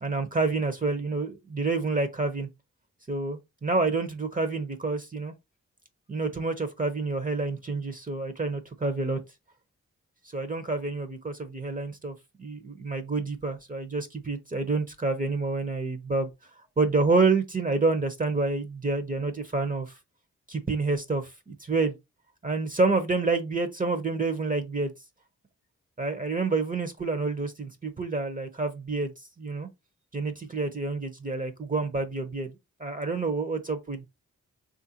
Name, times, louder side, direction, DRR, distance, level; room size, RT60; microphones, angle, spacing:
voice 1, 0.0-2.5 3.1-5.3 6.1-9.2 10.3-16.3 16.8-19.9 20.5-21.9 22.4-24.9 26.0-29.1 29.4-29.7 30.1-32.5 32.8-34.1, right 3 dB, 25° right, 0.7 m, -28 dB
3.4 x 2.5 x 2.8 m
cardioid pair, 45°, 32 cm